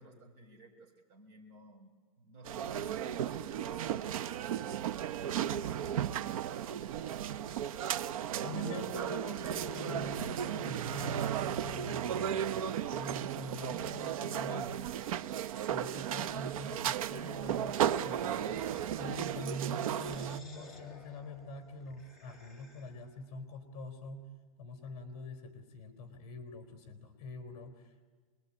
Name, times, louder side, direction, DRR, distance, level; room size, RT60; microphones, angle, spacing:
voice 1, 0.0-4.1, right 2 dB, 45° right, 2 dB, 5.9 m, -55 dB
sound 1, 2.4-20.4, right 10 dB, 70° right, 0.9 m, -35 dB
voice 2, 8.4-14.9 15.7-18.6 19.0-24.3 24.6-28.0, left 1 dB, 30° left, 7 dB, 3.7 m, -44 dB
sound 2, 17.7-23.1, left 1 dB, ahead, 3.1 m, -54 dB
26.5 x 22.0 x 9.9 m, 1.5 s
supercardioid pair, 160°, 19 cm